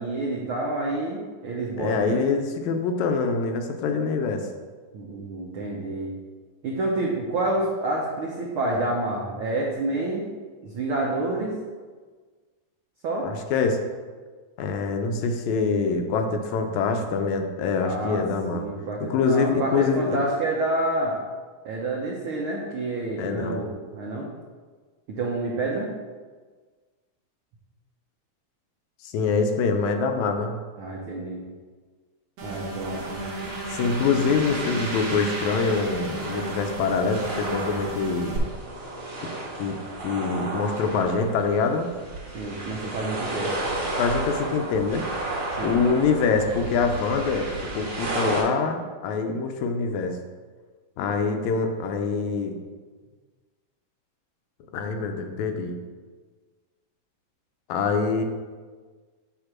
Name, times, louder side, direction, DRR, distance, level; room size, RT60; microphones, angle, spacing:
voice 1, 0.0-2.2 4.9-6.1 6.6-10.2 10.6-11.5 13.0-13.3 17.8-18.2 18.5-21.2 21.6-24.3 25.1-25.9 30.8-31.5 32.4-33.2 42.3-43.5 45.6-45.9, right 2 dB, 80° right, -2 dB, 1.2 m, -28 dB
voice 2, 1.8-4.5 13.2-13.8 14.6-18.7 19.0-20.2 23.2-23.6 29.0-30.6 33.7-38.4 39.2-39.3 39.6-41.9 44.0-45.1 45.6-50.2 51.0-52.6 54.7-55.8 57.7-58.2, left 4 dB, 80° left, 5 dB, 1.9 m, -25 dB
sound 1, 32.4-38.4, right 2 dB, 60° right, 2.5 m, -35 dB
sound 2, 32.8-48.4, right 2 dB, 45° right, 2.8 m, -33 dB
8.1 x 2.9 x 5.9 m, 1.4 s
omnidirectional pair, 3.4 m